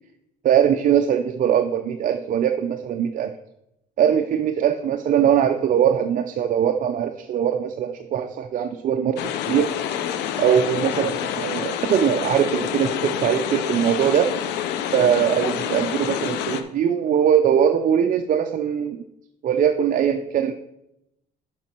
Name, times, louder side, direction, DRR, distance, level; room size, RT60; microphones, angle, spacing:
voice 1, 0.4-3.3 4.0-9.2 9.5-10.0 10.4-14.3 14.9-19.0 19.4-20.5, right 9 dB, 50° right, 6 dB, 0.6 m, -21 dB
sound 1, 9.2-16.6, left 9 dB, 90° left, 0.7 m, -27 dB
7.5 x 5.2 x 5.9 m, 0.83 s
cardioid pair, 110°, 17 cm